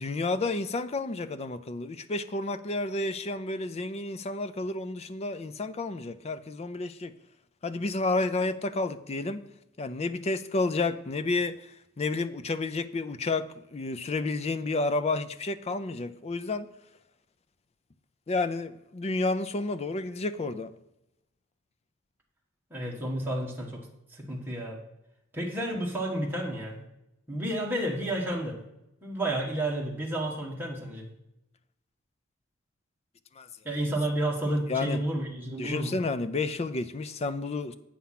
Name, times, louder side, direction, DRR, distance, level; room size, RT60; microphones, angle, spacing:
voice 1, 0.0-7.1 7.6-9.4 9.8-11.7 12.0-16.7 18.3-20.7 33.4-33.5 34.7-35.0 35.6-37.7, left 3 dB, 30° left, 0.4 m, -30 dB
voice 2, 22.7-23.8 24.1-24.8 25.3-26.8 27.3-28.6 29.0-31.1 33.6-36.0, right 1 dB, 10° right, 1.5 m, -31 dB
8.6 x 5.7 x 5.8 m
head